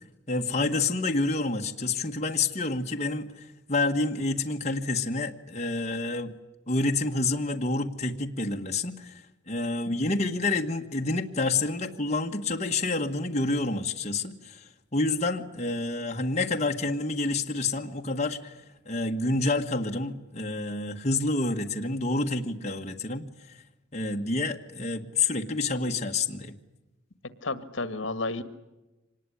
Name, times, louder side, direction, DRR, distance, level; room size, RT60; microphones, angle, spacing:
voice 1, 0.3-6.3 6.7-23.2 23.9-26.6, left 3 dB, 35° left, 2 dB, 1.6 m, -28 dB
voice 2, 27.4-28.4, left 3 dB, 75° left, 13 dB, 1.7 m, -31 dB
25.5 x 20.0 x 9.9 m, 1.1 s
head